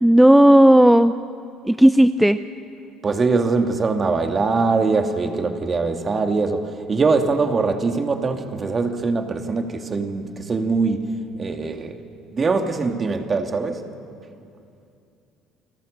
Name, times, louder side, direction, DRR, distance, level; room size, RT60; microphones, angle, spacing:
voice 1, 0.0-1.1 1.7-2.4, right 1 dB, 5° right, 0.6 m, -13 dB
voice 2, 3.0-11.1 11.4-12.0 12.3-13.8, right 4 dB, 35° right, 2.4 m, -22 dB
29.5 x 19.5 x 6.7 m
hypercardioid pair, 65°, 0 cm